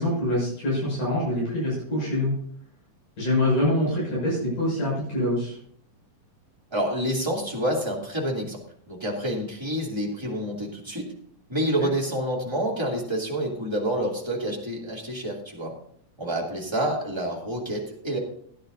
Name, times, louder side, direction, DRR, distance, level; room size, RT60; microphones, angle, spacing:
voice 1, 0.0-2.4 3.2-5.6 11.8-11.9, left 1 dB, 70° left, -6 dB, 7.9 m, -25 dB
voice 2, 6.7-8.6 8.9-11.1 11.5-15.7 16.2-18.2, right 1 dB, 10° right, -4 dB, 2.3 m, -28 dB
17.5 x 10.5 x 2.7 m, 0.62 s
omnidirectional pair, 3.8 m